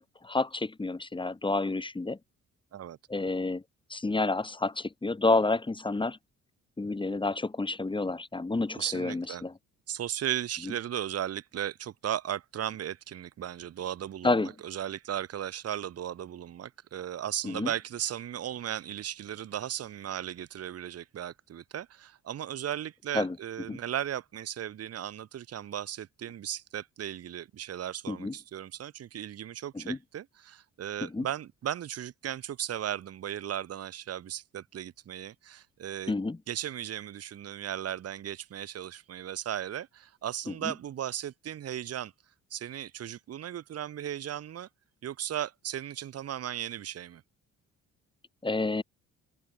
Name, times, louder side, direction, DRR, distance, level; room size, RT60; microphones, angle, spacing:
voice 1, 0.0-2.2 3.1-3.6 3.9-6.2 6.8-9.5 14.2-14.5 17.4-17.7 23.1-23.4 23.7-23.8 28.1-28.3 29.7-30.0 31.0-31.3 36.1-36.4 40.6-40.7 48.4-48.8, left 3 dB, 15° left, 1.7 m, -29 dB
voice 2, 8.7-9.4 9.9-36.1 36.5-42.1 42.5-44.7 45.0-47.2, right 10 dB, 55° right, 1.2 m, -36 dB
open air
cardioid pair, 90°, 30 cm